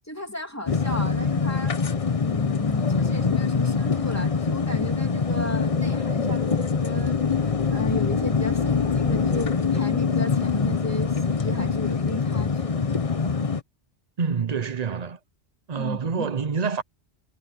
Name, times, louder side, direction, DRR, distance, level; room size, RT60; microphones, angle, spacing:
voice 1, 0.1-1.8 2.2-7.2 7.7-12.8 15.8-16.3, left 1 dB, 15° left, 2.9 m, -35 dB
sound 1, 0.7-13.6, left 5 dB, 35° left, 0.9 m, -24 dB
voice 2, 14.2-15.2 15.7-16.8, right 5 dB, 45° right, 0.8 m, -27 dB
omnidirectional pair, 1.1 m